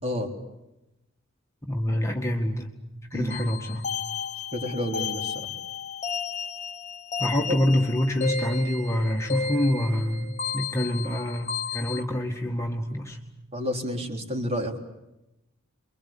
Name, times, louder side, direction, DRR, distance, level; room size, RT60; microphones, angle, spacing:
voice 1, 1.6-2.7 3.1-3.8 7.2-13.2, left 1 dB, 15° left, 1 dB, 2.0 m, -26 dB
sound 1, 3.3-12.0, left 6 dB, 35° left, 1.5 m, -33 dB
voice 2, 4.5-5.5 7.5-7.6 13.5-14.8, left 1 dB, 30° right, 3 dB, 3.9 m, -30 dB
28.5 x 23.5 x 8.7 m, 0.93 s
head